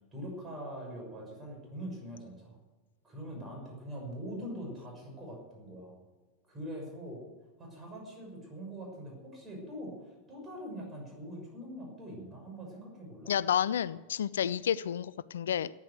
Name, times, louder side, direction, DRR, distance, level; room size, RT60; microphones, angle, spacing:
voice 1, 0.1-2.6 3.0-5.9 6.5-7.2 7.6-13.3, equal, 20° right, 0 dB, 6.2 m, -43 dB
voice 2, 13.3-15.7, left 9 dB, 65° left, 19 dB, 0.4 m, -30 dB
14.5 x 9.9 x 8.1 m, 1.3 s
figure-of-eight pair, 90°, 0 cm